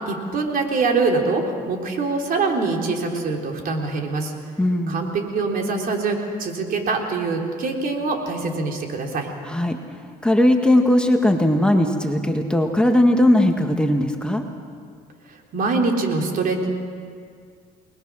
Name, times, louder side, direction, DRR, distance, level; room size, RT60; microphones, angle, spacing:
voice 1, 0.0-4.3 4.9-9.3 15.5-16.7, right 3 dB, 60° right, 2 dB, 3.8 m, -24 dB
voice 2, 4.6-5.0 9.4-9.8 10.2-14.4, left 1 dB, 5° left, 3 dB, 1.7 m, -18 dB
29.5 x 20.5 x 6.3 m, 2.1 s
cardioid pair, 110°, 17 cm